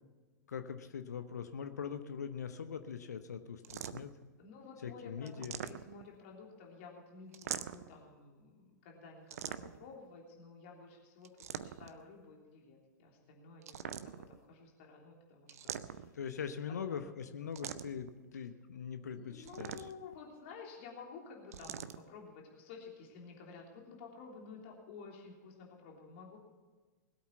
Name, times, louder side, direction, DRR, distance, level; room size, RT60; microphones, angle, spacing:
voice 1, 0.5-4.1 4.8-5.6 16.2-19.7, left 7 dB, 65° left, 9 dB, 1.0 m, -42 dB
sound 1, 3.6-4.2 5.3-6.2 7.3-8.0 9.3-9.9 11.2-12.0 13.6-14.4 15.5-16.3 17.6-18.1 19.4-20.2 21.5-22.0, right 9 dB, 55° right, 0.7 m, -43 dB
voice 2, 4.4-11.3 11.6-16.1 16.7-17.1 19.1-26.4, left 5 dB, 45° left, 0 dB, 3.4 m, -52 dB
20.5 x 8.5 x 5.8 m, 1.3 s
figure-of-eight pair, 105°, 10 cm